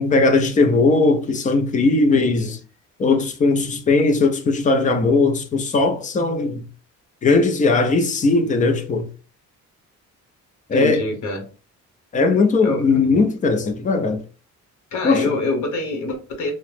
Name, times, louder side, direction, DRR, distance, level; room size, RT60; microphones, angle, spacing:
voice 1, 0.0-2.6 3.0-6.7 7.2-9.1 10.7-11.0 12.1-14.2 15.0-15.3, left 3 dB, 25° left, 0.4 m, -18 dB
voice 2, 2.1-2.6 10.7-11.4 12.6-13.2 14.9-16.5, left 2 dB, 65° left, 0.9 m, -26 dB
2.8 x 2.0 x 3.2 m
cardioid pair, 155°, 32 cm